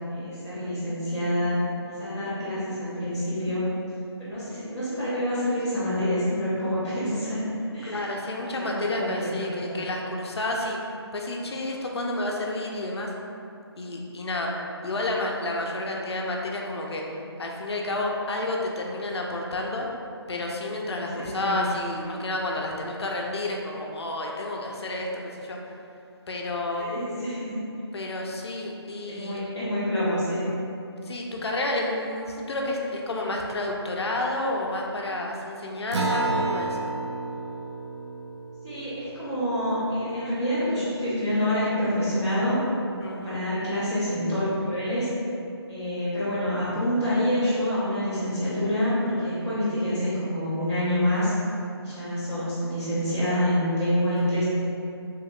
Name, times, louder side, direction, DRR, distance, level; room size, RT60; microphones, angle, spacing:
voice 1, 0.1-1.6 1.9-3.7 4.2-7.4 7.7-8.1 8.4-9.8 21.1-21.7 26.8-27.6 29.1-30.6 38.6-42.6 43.0-45.1 45.7-51.3 51.8-54.4, equal, 5° right, -19 dB, 0.4 m, -27 dB
voice 2, 7.8-10.8 11.1-13.1 13.8-14.5 14.8-17.0 17.4-19.9 20.3-25.6 26.3-26.9 27.9-29.4 31.0-36.8 43.0-43.4, left 2 dB, 70° left, -1 dB, 0.5 m, -30 dB
Acoustic guitar, 35.9-40.8, right 2 dB, 90° right, 0.5 m, -31 dB
2.9 x 2.2 x 3.6 m, 2.6 s
hypercardioid pair, 170°, 14 cm